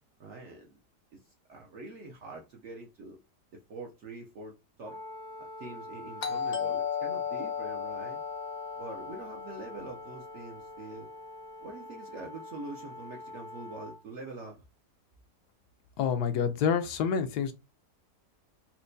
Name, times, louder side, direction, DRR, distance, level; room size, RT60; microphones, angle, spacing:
voice 1, 0.2-0.8 1.1-3.2 3.7-5.0 5.6-8.2 8.8-11.1 11.6-14.6, right 2 dB, 65° right, 0.7 m, -44 dB
Wind instrument woodwind instrument, 4.8-14.0, left 1 dB, 85° right, 0.3 m, -44 dB
Doorbell, 6.2-10.8, left 8 dB, 55° left, 0.8 m, -35 dB
voice 2, 16.0-17.5, left 7 dB, 75° left, 1.1 m, -27 dB
4.3 x 2.2 x 2.6 m
omnidirectional pair, 1.8 m